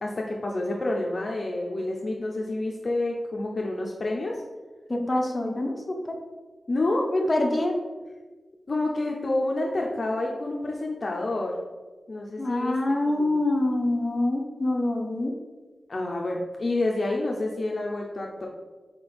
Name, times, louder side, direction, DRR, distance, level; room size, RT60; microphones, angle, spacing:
voice 1, 0.0-4.4 6.7-7.1 8.7-11.6 12.1-12.8 13.2-13.4 15.9-18.5, left 2 dB, 45° left, -1 dB, 0.6 m, -28 dB
voice 2, 4.9-6.2 7.1-7.8 12.4-15.3, left 1 dB, 15° left, 0 dB, 0.9 m, -25 dB
4.4 x 4.2 x 5.1 m, 1.3 s
wide cardioid pair, 130°, 0 cm